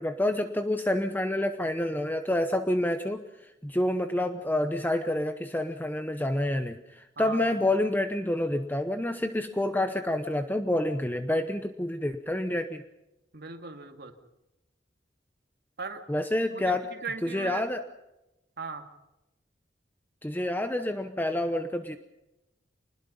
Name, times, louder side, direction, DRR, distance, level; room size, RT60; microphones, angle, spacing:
voice 1, 0.0-12.8 16.1-16.8 17.2-17.8 20.2-22.0, left 1 dB, 10° left, 8 dB, 0.9 m, -28 dB
voice 2, 7.2-7.5 13.3-14.1 15.8-16.0 16.5-17.7 18.6-18.8, right 4 dB, 60° right, 5 dB, 2.4 m, -38 dB
25.5 x 20.5 x 5.5 m, 0.95 s
head